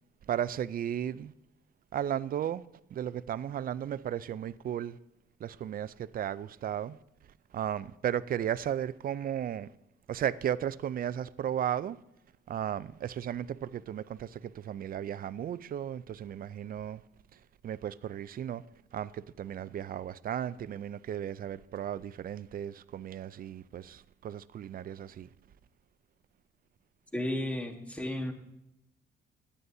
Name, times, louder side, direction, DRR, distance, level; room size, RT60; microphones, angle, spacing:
voice 1, 0.3-1.3 1.9-2.6 2.9-5.0 5.4-7.0 7.5-9.7 10.1-12.0 12.5-17.0 17.6-18.6 18.9-25.3, right 10 dB, 45° right, 0.4 m, -35 dB
voice 2, 27.1-28.3, left 1 dB, 5° left, 1.3 m, -33 dB
15.0 x 9.9 x 2.7 m
cardioid pair, 90°, 20 cm